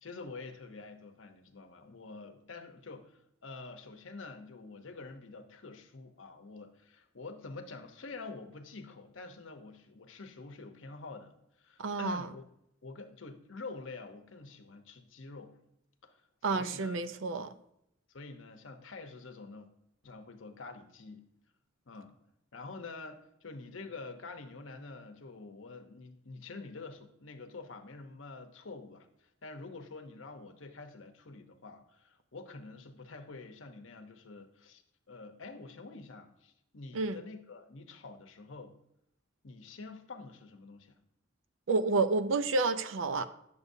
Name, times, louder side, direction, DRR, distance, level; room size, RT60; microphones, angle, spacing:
voice 1, 0.0-11.3 11.6-12.4 12.8-15.6 16.0-17.0 18.1-19.7 20.0-21.2 21.9-22.1 22.5-34.8 35.1-38.7 39.4-40.9, left 3 dB, 75° left, 0.9 m, -47 dB
voice 2, 11.8-12.3 16.4-17.5 36.9-37.2 41.7-43.3, right 3 dB, 75° right, 0.5 m, -30 dB
9.6 x 6.9 x 2.7 m
head